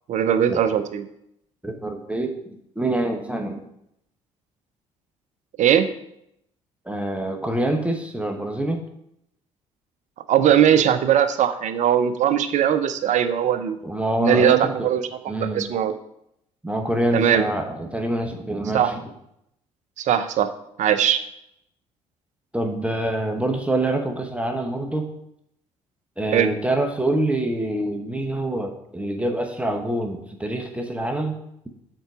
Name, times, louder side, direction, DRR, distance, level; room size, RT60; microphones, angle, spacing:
voice 1, 0.1-1.0 5.6-5.9 10.3-13.8 14.2-15.9 17.1-17.4 18.7-18.9 20.0-20.5 20.8-21.2 26.3-26.5, right 9 dB, 50° right, 12 dB, 0.7 m, -20 dB
voice 2, 1.6-3.7 6.8-8.8 13.8-14.9 15.3-15.7 16.6-19.0 22.5-25.1 26.2-31.4, right 1 dB, 5° right, 3 dB, 1.1 m, -26 dB
8.0 x 4.6 x 4.9 m, 0.78 s
figure-of-eight pair, 50°, 16 cm